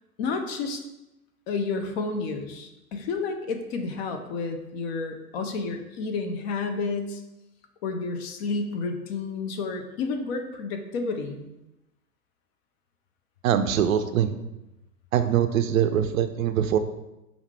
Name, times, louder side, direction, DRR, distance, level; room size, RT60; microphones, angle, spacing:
voice 1, 0.2-0.8 1.5-7.2 7.8-11.4, left 4 dB, 45° left, 6 dB, 0.6 m, -30 dB
voice 2, 13.4-14.4 15.1-16.8, right 9 dB, 65° right, 10 dB, 0.5 m, -23 dB
4.9 x 2.5 x 3.3 m, 0.94 s
figure-of-eight pair, 100°, 44 cm